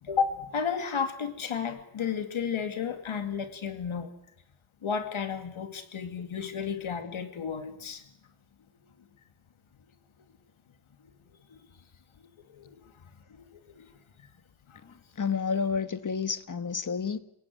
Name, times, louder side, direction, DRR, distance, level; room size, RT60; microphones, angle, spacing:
voice 1, 0.0-4.1 4.8-8.1 11.5-11.7 12.5-12.9 13.3-13.9 14.2-14.3 14.7-14.8, left 6 dB, 75° left, 8 dB, 2.4 m, -33 dB
voice 2, 14.8-17.2, left 6 dB, 40° left, 12 dB, 1.5 m, -30 dB
28.0 x 18.0 x 9.4 m, 0.76 s
wide cardioid pair, 125°, 49 cm